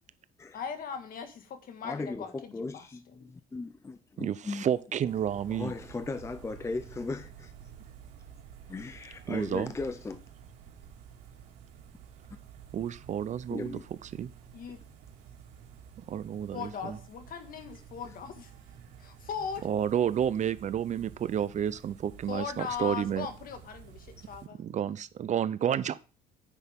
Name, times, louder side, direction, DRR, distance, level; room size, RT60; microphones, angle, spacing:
voice 1, 0.5-2.8 14.5-14.8 16.5-18.5 19.0-19.7 22.3-24.6, left 7 dB, 60° left, 1.8 m, -39 dB
voice 2, 1.8-4.7 5.5-7.5 8.7-10.2 13.5-13.9, left 3 dB, 15° left, 0.6 m, -37 dB
voice 3, 4.2-5.7 9.3-9.7 12.7-14.3 16.0-17.0 19.6-23.3 24.5-26.0, right 9 dB, 45° right, 0.6 m, -31 dB
sound 1, 5.0-24.5, right 8 dB, 90° right, 2.1 m, -51 dB
9.9 x 8.2 x 3.6 m
cardioid pair, 110°, 17 cm